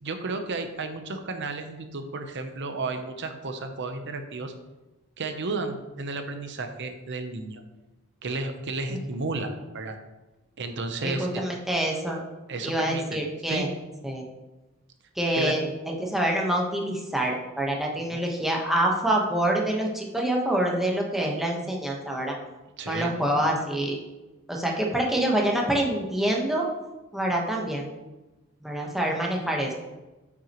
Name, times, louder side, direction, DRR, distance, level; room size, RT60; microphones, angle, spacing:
voice 1, 0.0-4.5 5.2-7.6 8.2-10.0 10.6-11.4 12.5-13.2 13.5-13.7 15.3-15.5 18.0-18.2 22.8-23.1 23.4-23.5, right 3 dB, 55° right, 7 dB, 0.8 m, -33 dB
voice 2, 11.0-12.2 12.6-13.7 14.0-14.2 15.2-22.4 22.9-24.0 24.5-26.7 27.1-27.8 28.6-29.7, right 1 dB, ahead, -1 dB, 1.1 m, -26 dB
8.8 x 5.9 x 3.0 m, 1.1 s
head